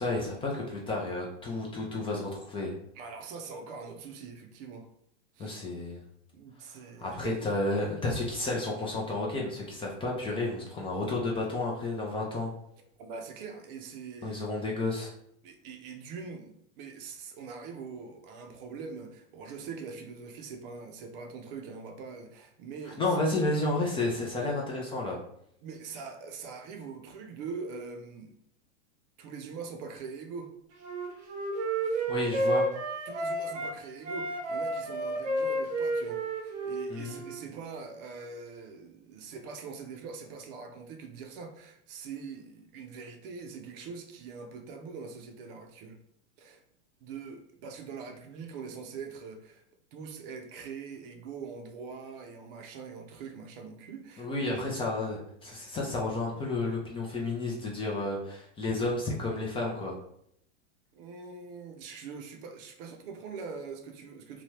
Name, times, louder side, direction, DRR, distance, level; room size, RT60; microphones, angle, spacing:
voice 1, 0.0-2.7 5.4-6.0 7.0-12.5 14.2-15.1 22.9-25.2 32.1-32.7 36.9-37.2 54.2-59.9, left 2 dB, 15° left, -2 dB, 0.5 m, -31 dB
voice 2, 2.9-4.9 5.4-5.6 6.3-7.4 13.0-14.4 15.4-23.0 25.6-28.3 29.2-30.5 31.8-32.1 33.1-46.0 46.4-46.6 47.0-49.6 49.9-54.6 60.9-64.4, right 5 dB, 50° right, 5 dB, 0.6 m, -43 dB
Wind instrument woodwind instrument, 30.8-33.7 34.0-37.4, right 1 dB, 90° right, 0.9 m, -31 dB
2.9 x 2.3 x 3.1 m, 0.71 s
hypercardioid pair, 125°, 35 cm